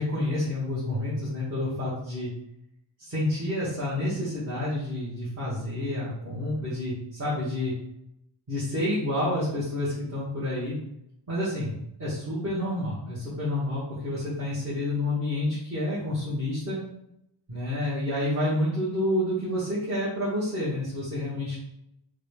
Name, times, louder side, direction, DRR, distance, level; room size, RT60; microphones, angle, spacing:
voice 1, 0.0-2.3 3.0-7.7 8.5-10.7 11.3-16.8 17.5-21.6, left 1 dB, 30° right, -11 dB, 1.2 m, -29 dB
3.8 x 2.3 x 3.3 m, 0.81 s
wide cardioid pair, 130°, 49 cm